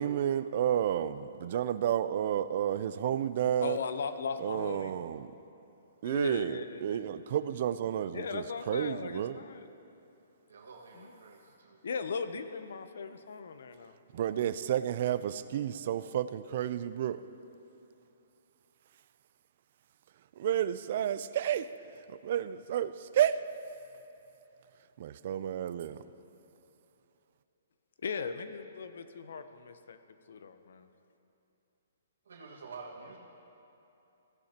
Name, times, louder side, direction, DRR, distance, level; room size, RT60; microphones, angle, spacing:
voice 1, 0.0-3.8 4.4-5.3 6.0-9.4 14.1-17.2 20.4-21.7 22.1-23.4 25.0-26.0, right 10 dB, 40° right, 0.4 m, -31 dB
voice 2, 3.6-5.0 6.0-7.1 8.1-9.7 11.0-11.1 11.8-14.0 28.0-30.0 30.3-30.9, left 5 dB, 65° left, 0.7 m, -38 dB
voice 3, 10.5-11.8 32.2-33.2, right 4 dB, 90° right, 1.7 m, -48 dB
17.0 x 15.0 x 2.9 m
hypercardioid pair, 170°, 0 cm